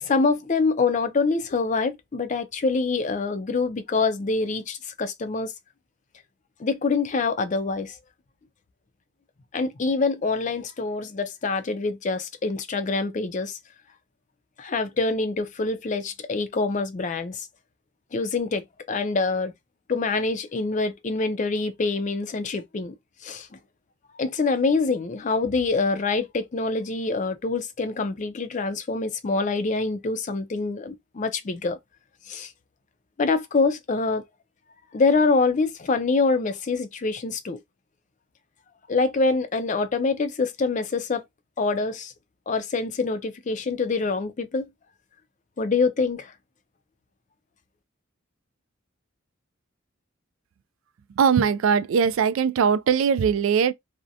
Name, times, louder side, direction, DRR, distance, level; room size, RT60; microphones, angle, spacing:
voice 1, 0.0-5.5 6.6-8.0 9.5-13.6 14.6-17.5 18.1-19.5 19.9-22.9 23.2-23.5 24.2-31.8 32.3-32.5 33.2-34.2 34.9-37.6 38.9-41.2 41.6-42.1 42.5-44.7 45.6-46.3, left 4 dB, 40° left, 0.4 m, -25 dB
voice 2, 51.2-53.7, right 6 dB, 80° right, 0.3 m, -20 dB
2.7 x 2.1 x 2.4 m
head